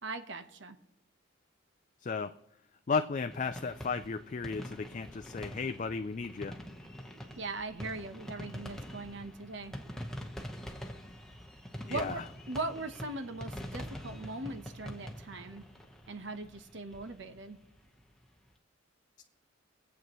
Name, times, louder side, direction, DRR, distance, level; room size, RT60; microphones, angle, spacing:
voice 1, 0.0-0.8 7.4-9.8 11.9-12.2 12.5-15.6 16.1-17.6, right 2 dB, 65° right, 9 dB, 1.0 m, -40 dB
voice 2, 2.0-2.3 2.9-6.6 11.9-12.2, left 5 dB, 40° left, 8 dB, 0.4 m, -34 dB
sound 1, 3.3-18.2, equal, 5° left, 1.1 m, -45 dB
23.5 x 8.1 x 3.1 m, 0.79 s
head